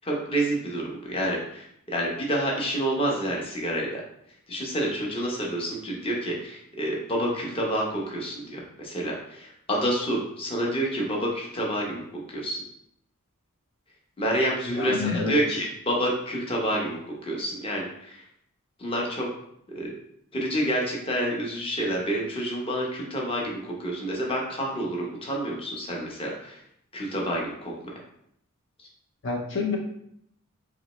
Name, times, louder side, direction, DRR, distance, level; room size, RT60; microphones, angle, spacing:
voice 1, 0.0-4.0 4.5-12.0 12.3-12.6 14.2-18.3 18.8-19.3 19.7-19.9 20.3-26.6 26.9-27.7 28.8-28.9, right 1 dB, 25° left, -2 dB, 0.8 m, -28 dB
voice 2, 14.7-15.4 29.2-29.8, left 4 dB, 60° left, -1 dB, 0.6 m, -28 dB
4.1 x 3.0 x 2.9 m, 0.72 s
head